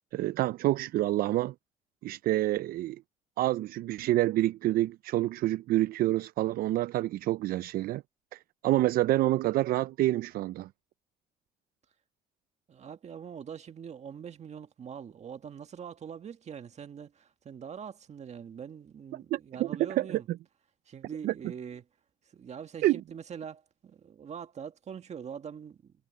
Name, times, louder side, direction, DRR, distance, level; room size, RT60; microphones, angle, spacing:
voice 1, 0.1-1.5 2.0-3.0 3.4-8.0 8.3-10.7 19.3-20.2 21.2-21.3 22.8-23.0, right 16 dB, 60° right, 0.4 m, -27 dB
voice 2, 12.7-20.3 20.9-21.8 22.2-25.9, right 7 dB, 40° right, 1.9 m, -43 dB
cardioid pair, 110°, 17 cm